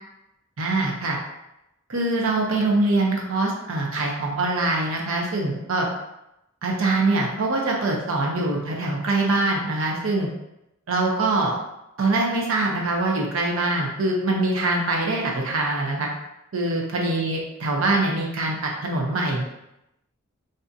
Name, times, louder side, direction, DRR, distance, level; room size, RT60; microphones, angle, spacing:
voice 1, 0.6-1.2 1.9-5.9 6.6-10.3 10.9-11.5 12.0-16.1 16.5-19.5, right 2 dB, 80° right, -1 dB, 0.6 m, -23 dB
3.3 x 2.6 x 2.6 m, 0.87 s
head